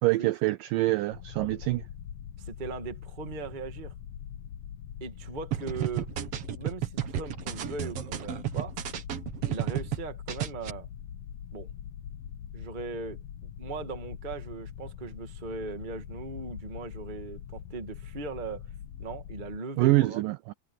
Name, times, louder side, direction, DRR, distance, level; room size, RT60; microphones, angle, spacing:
voice 1, 0.0-1.8 19.8-20.5, right 19 dB, 85° right, 1.9 m, -25 dB
sound 1, 1.1-19.6, left 9 dB, 75° left, 1.6 m, -43 dB
voice 2, 2.4-3.9 5.0-6.1 6.5-8.7 9.5-10.9 11.5-11.7 12.5-18.6 19.0-20.2, right 4 dB, 35° right, 0.7 m, -39 dB
sound 2, 5.5-10.0 10.3-10.7, right 11 dB, 60° right, 1.6 m, -32 dB
omnidirectional pair, 4.6 m